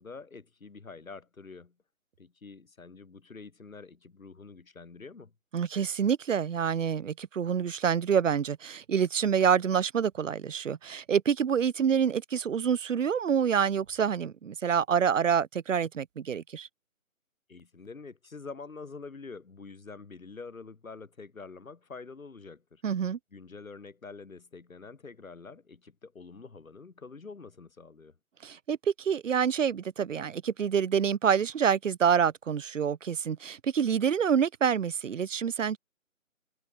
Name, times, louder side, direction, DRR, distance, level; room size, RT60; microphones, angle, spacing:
voice 1, 0.0-1.7 2.2-5.3 17.5-22.8 23.3-28.2, left 4 dB, 70° left, 4.6 m, -46 dB
voice 2, 5.5-16.7 22.8-23.2 28.4-35.8, right 7 dB, 60° right, 0.7 m, -27 dB
figure-of-eight pair, 170°, 42 cm